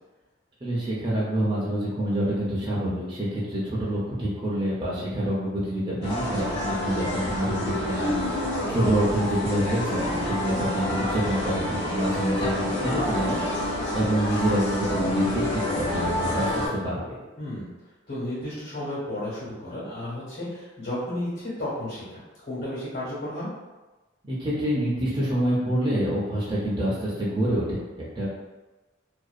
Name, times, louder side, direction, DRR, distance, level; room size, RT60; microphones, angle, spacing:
voice 1, 0.6-17.2 24.2-28.3, right 1 dB, 25° right, -7 dB, 0.5 m, -27 dB
sound 1, 6.0-16.7, left 1 dB, 60° left, 0.9 m, -28 dB
voice 2, 17.4-17.7 18.1-23.5, left 1 dB, 80° left, -9 dB, 1.2 m, -33 dB
2.6 x 2.2 x 2.4 m, 1.2 s
head